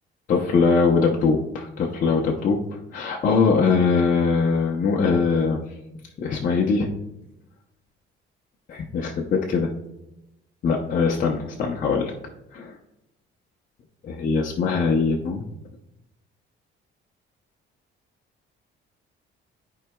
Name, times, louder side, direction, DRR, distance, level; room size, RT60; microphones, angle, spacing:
voice 1, 0.3-2.6 2.9-5.6 6.2-6.9 8.7-9.7 10.6-12.1 12.5-12.8 14.0-15.4, left 4 dB, 40° left, -1 dB, 0.7 m, -22 dB
14.0 x 4.7 x 2.3 m, 0.92 s
cardioid pair, 170°, 21 cm